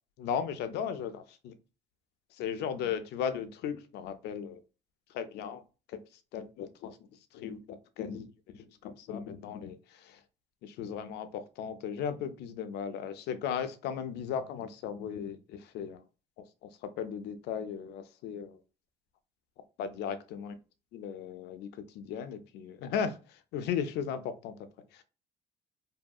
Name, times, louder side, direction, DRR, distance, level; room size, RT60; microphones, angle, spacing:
voice 1, 0.2-1.5 2.3-4.6 5.1-5.6 5.9-6.0 6.3-7.0 7.3-10.2 10.6-16.0 16.4-18.6 19.8-20.5 20.9-24.6 24.9-25.0, left 7 dB, 75° left, 10 dB, 0.4 m, -36 dB
2.7 x 2.6 x 2.3 m, 0.33 s
cardioid pair, 110°, 17 cm